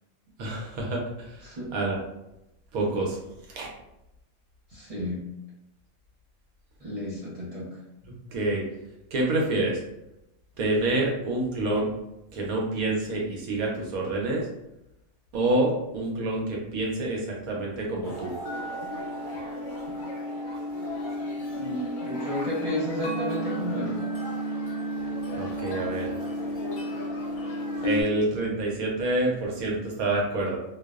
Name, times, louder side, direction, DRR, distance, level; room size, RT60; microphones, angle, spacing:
voice 1, 0.4-1.0 1.3-1.4 1.7-2.0 2.7-3.2 3.5-3.7 8.3-8.6 9.1-9.8 10.6-11.9 12.3-14.5 15.3-18.3 25.3-26.1 27.8-30.6, right 2 dB, 90° right, -1 dB, 1.1 m, -27 dB
voice 2, 1.4-1.7 4.7-5.2 6.8-7.8 21.5-24.0, left 1 dB, 55° right, -8 dB, 0.4 m, -32 dB
sound 1, 18.0-28.0, equal, 75° left, 0.4 m, -32 dB
2.6 x 2.0 x 2.3 m, 0.87 s
omnidirectional pair, 1.4 m